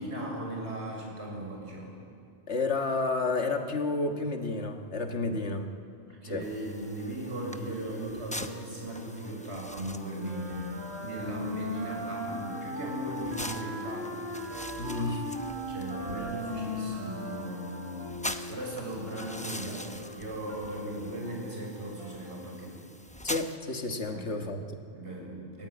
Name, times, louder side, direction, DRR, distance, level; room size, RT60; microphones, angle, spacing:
voice 1, 0.0-1.9 5.2-5.4 6.1-10.6 11.0-14.3 15.7-18.1 18.5-22.8 24.1-24.5 24.9-25.7, right 1 dB, 80° right, -1 dB, 6.5 m, -38 dB
voice 2, 2.5-5.7 6.3-6.5 14.8-15.3 23.2-24.8, left 3 dB, 90° left, 4 dB, 1.9 m, -31 dB
sound 1, 6.4-23.6, left 1 dB, 10° left, 0.7 m, -44 dB
sound 2, 6.5-22.5, right 2 dB, 30° left, 2.4 m, -47 dB
Wind instrument woodwind instrument, 10.2-18.4, left 2 dB, 50° right, 5.8 m, -37 dB
29.5 x 14.5 x 9.4 m, 2.4 s
omnidirectional pair, 1.1 m